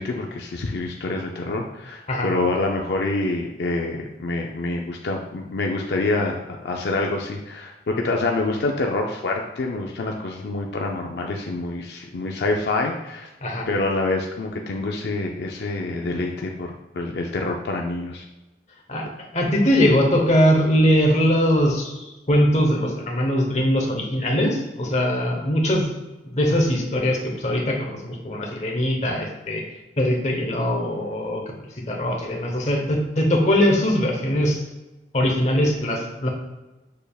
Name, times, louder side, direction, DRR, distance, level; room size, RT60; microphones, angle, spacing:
voice 1, 0.0-13.3 13.7-18.2, left 2 dB, 70° left, 1 dB, 0.4 m, -26 dB
voice 2, 19.3-25.9 26.2-29.6 30.0-31.4 31.9-34.6 35.1-36.3, equal, 40° left, 1 dB, 0.8 m, -21 dB
6.5 x 3.4 x 2.3 m, 1.1 s
head